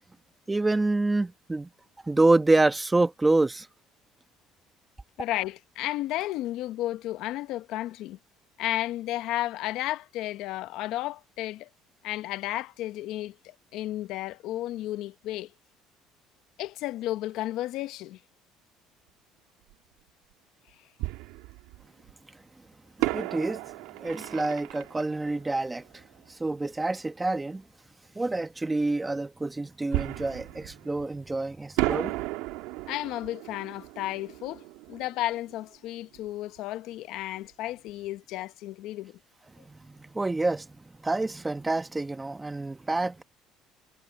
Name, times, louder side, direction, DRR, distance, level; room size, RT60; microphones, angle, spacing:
voice 1, 0.5-1.7 2.0-3.7 23.1-23.6 24.0-26.0 26.3-27.6 28.1-32.1 39.7-40.7 41.0-43.2, right 2 dB, 15° right, 1.5 m, -27 dB
voice 2, 5.2-8.2 8.6-11.7 12.0-15.5 16.6-18.2 32.9-39.2, left 15 dB, 75° left, 0.9 m, -33 dB
Fireworks, 19.7-19.8 21.0-22.1 23.0-26.5 29.9-31.4 31.8-36.3 36.6-36.7 37.2-37.4, right 19 dB, 90° right, 1.8 m, -34 dB
cardioid pair, 115°, 0 cm